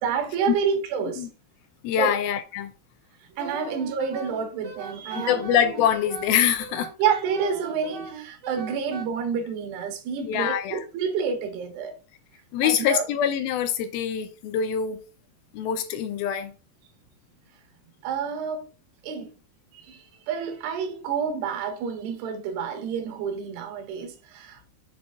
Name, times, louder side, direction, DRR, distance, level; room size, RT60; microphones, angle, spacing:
voice 1, 0.0-1.3 2.0-2.2 3.4-5.4 7.0-12.0 12.6-13.1 18.0-18.7 19.0-19.3 19.7-20.0 20.3-24.7, right 6 dB, 85° right, 3.2 m, -28 dB
voice 2, 1.8-2.7 3.6-3.7 5.3-6.9 10.2-10.8 12.5-15.0 15.5-16.5, left 9 dB, 80° left, 2.3 m, -24 dB
Wind instrument woodwind instrument, 3.4-9.1, right 6 dB, 55° right, 2.6 m, -39 dB
7.9 x 4.2 x 3.7 m
omnidirectional pair, 4.7 m